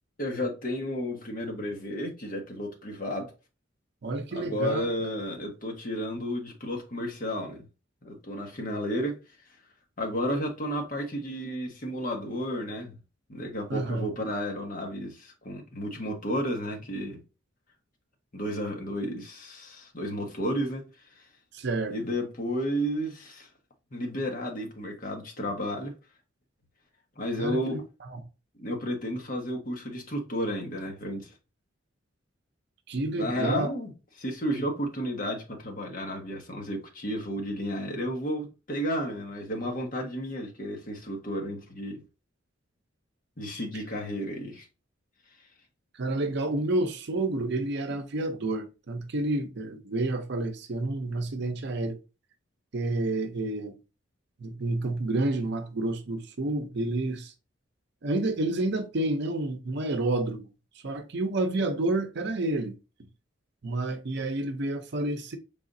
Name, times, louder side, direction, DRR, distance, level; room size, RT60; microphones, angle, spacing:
voice 1, 0.2-3.3 4.3-7.6 8.0-9.2 10.0-12.9 13.3-17.2 18.3-20.8 21.9-23.5 23.9-25.9 27.2-27.8 28.6-31.3 33.2-33.9 34.2-42.0 43.4-44.7, equal, 45° left, 1.1 m, -32 dB
voice 2, 4.0-4.9 13.7-14.1 21.5-21.9 27.4-27.8 28.1-28.2 32.9-33.7 46.0-52.0 52.7-53.8 54.4-57.3 58.0-60.5 60.8-62.7 63.6-65.4, right 2 dB, 60° right, 0.6 m, -29 dB
4.9 x 3.5 x 2.6 m
head